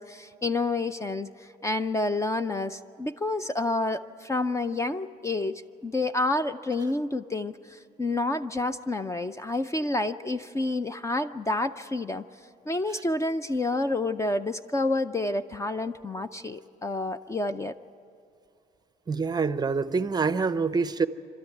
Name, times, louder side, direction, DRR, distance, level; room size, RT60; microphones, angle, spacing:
voice 1, 0.0-12.2 12.7-17.8, left 2 dB, 15° left, 12 dB, 0.5 m, -29 dB
voice 2, 19.1-21.1, right 4 dB, 25° right, 13 dB, 0.6 m, -26 dB
27.0 x 13.0 x 9.2 m, 2.4 s
cardioid pair, 110°, 17 cm